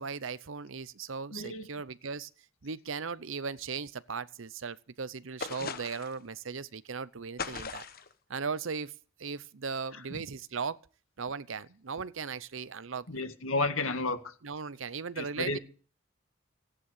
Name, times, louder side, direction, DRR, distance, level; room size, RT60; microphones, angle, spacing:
voice 1, 0.0-2.3 2.6-7.9 8.3-8.9 9.2-10.8 11.2-13.1 14.4-15.6, right 5 dB, 70° right, 0.7 m, -37 dB
voice 2, 1.3-1.7 10.1-10.2 13.1-14.3 15.2-15.6, left 2 dB, 80° left, 1.9 m, -32 dB
sound 1, 5.4-6.2 7.4-8.1, left 5 dB, 45° left, 1.1 m, -38 dB
15.5 x 10.0 x 6.6 m
head